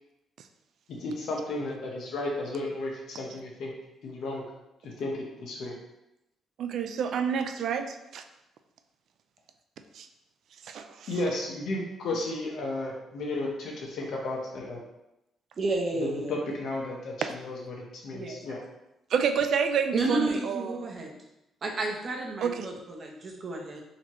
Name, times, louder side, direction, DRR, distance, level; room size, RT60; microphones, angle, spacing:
voice 1, 0.9-3.7 4.0-4.4 4.8-5.7 11.1-14.8 15.9-18.6, left 2 dB, 70° left, -1 dB, 1.0 m, -33 dB
voice 2, 6.6-8.2 9.9-10.1 10.6-11.1 17.2-17.3 19.1-20.9 22.4-22.7, right 7 dB, 70° right, 7 dB, 0.3 m, -29 dB
voice 3, 15.6-16.4 18.1-18.5 19.9-21.1 21.6-23.8, right 2 dB, 45° right, 1 dB, 0.8 m, -31 dB
4.1 x 2.8 x 3.0 m, 0.90 s
cardioid pair, 90°, 0 cm